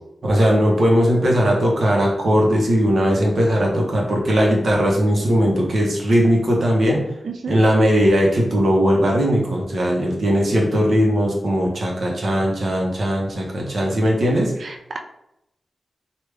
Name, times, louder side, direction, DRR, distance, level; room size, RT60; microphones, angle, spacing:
voice 1, 0.2-7.0 7.5-14.5, equal, 50° right, -2 dB, 0.8 m, -18 dB
voice 2, 7.2-7.6 14.6-15.0, right 5 dB, 75° right, 3 dB, 0.4 m, -31 dB
3.4 x 2.3 x 3.2 m, 0.86 s
wide cardioid pair, 155°, 0 cm